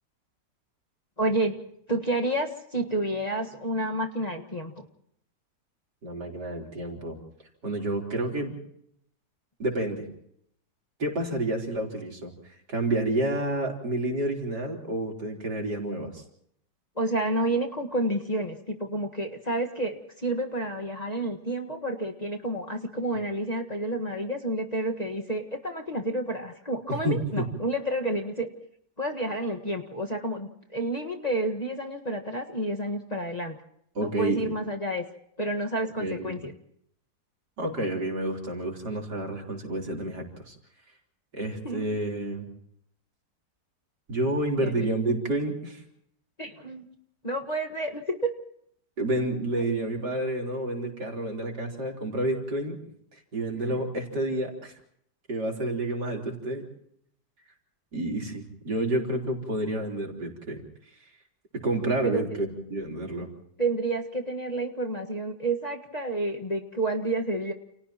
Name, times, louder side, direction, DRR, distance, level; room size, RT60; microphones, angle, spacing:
voice 1, 1.2-1.6 1.9-4.9 17.0-28.5 29.0-33.6 34.0-35.0 35.4-36.5 41.6-41.9 44.6-44.9 46.4-46.9 47.2-48.3 53.5-53.6 62.0-62.2 63.6-67.5, right 1 dB, 25° left, 1 dB, 1.7 m, -30 dB
voice 2, 6.0-7.2 7.6-8.6 9.6-10.1 11.0-16.2 26.9-27.5 33.9-34.6 36.0-36.4 37.6-40.6 41.3-42.5 44.1-45.8 49.0-52.8 53.1-54.8 55.3-56.7 57.9-60.6 61.6-63.3, right 1 dB, 70° right, 1 dB, 4.6 m, -29 dB
30.0 x 29.5 x 3.0 m, 0.71 s
omnidirectional pair, 1.8 m